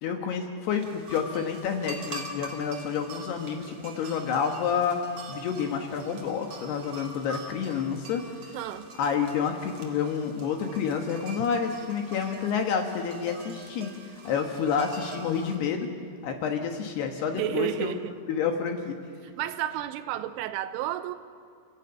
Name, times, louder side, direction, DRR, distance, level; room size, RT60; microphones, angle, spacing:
voice 1, 0.0-5.0 5.3-8.2 9.0-13.9 14.2-15.9 16.2-17.9 18.3-19.0, left 6 dB, 70° left, 4 dB, 2.9 m, -29 dB
sound 1, 0.7-15.6, right 2 dB, 55° right, 1.9 m, -44 dB
voice 2, 8.5-8.9 17.4-18.1 19.2-21.2, right 12 dB, 85° right, 9 dB, 3.2 m, -31 dB
29.0 x 14.0 x 8.7 m, 2.2 s
omnidirectional pair, 5.7 m